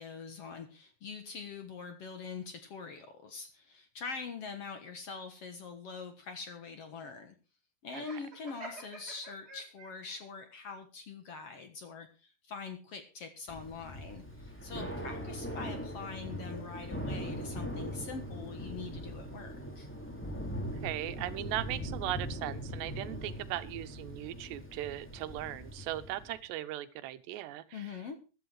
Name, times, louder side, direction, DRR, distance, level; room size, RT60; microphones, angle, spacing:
voice 1, 0.0-7.3 7.8-19.9 27.7-28.2, left 5 dB, 60° left, 8 dB, 1.6 m, -44 dB
Laughter, 7.9-10.2, right 2 dB, 25° right, 6.9 m, -48 dB
Thunder / Rain, 13.5-26.4, equal, 5° left, 1.6 m, -41 dB
voice 2, 20.8-27.9, right 14 dB, 85° right, 12 dB, 3.1 m, -38 dB
15.0 x 11.5 x 4.8 m, 0.32 s
omnidirectional pair, 4.8 m